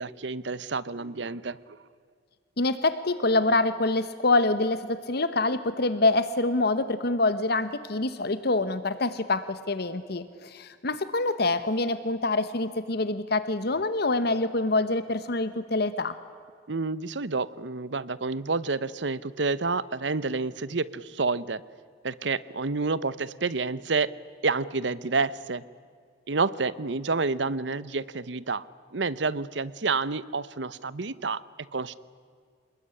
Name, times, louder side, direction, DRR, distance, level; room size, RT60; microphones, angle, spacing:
voice 1, 0.0-1.8 16.7-21.6 22.0-24.1 24.4-25.6 26.3-31.4 31.7-31.9, right 4 dB, 75° right, 18 dB, 0.9 m, -29 dB
voice 2, 2.6-16.2, left 2 dB, 60° left, 13 dB, 1.1 m, -26 dB
27.0 x 21.0 x 9.9 m, 2.2 s
head